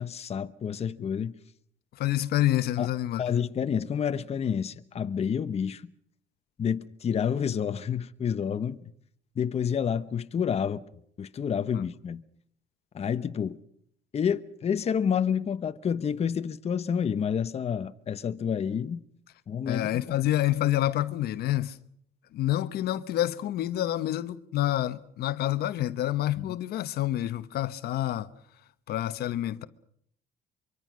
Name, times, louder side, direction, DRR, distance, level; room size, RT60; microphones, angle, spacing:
voice 1, 0.0-1.3 2.8-2.9 3.2-5.8 6.6-8.9 9.4-10.8 11.2-12.2 12.9-13.6 14.1-19.0 19.5-20.2 26.4-26.5, left 7 dB, 40° left, 1.0 m, -29 dB
voice 2, 2.0-3.4 11.7-11.8 19.7-21.8 22.3-28.3 28.9-29.6, left 13 dB, 70° left, 1.1 m, -28 dB
24.5 x 24.0 x 6.3 m
cardioid pair, 110°, 17 cm